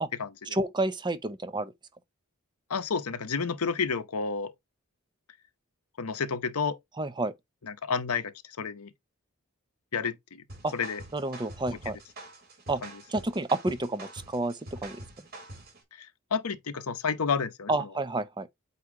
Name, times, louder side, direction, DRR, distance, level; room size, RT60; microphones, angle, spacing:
voice 1, 0.5-1.7 7.0-7.3 10.6-10.7 11.1-12.0 12.7-12.8 13.1-15.0 17.7-18.5, right 2 dB, 20° right, 0.7 m, -30 dB
voice 2, 2.7-4.5 6.0-6.8 7.6-8.9 9.9-10.4 10.7-11.0 12.8-13.0 16.0-17.9, left 5 dB, 90° left, 0.8 m, -31 dB
sound 1, 10.5-15.8, right 1 dB, 45° right, 3.0 m, -46 dB
8.2 x 2.8 x 4.8 m
head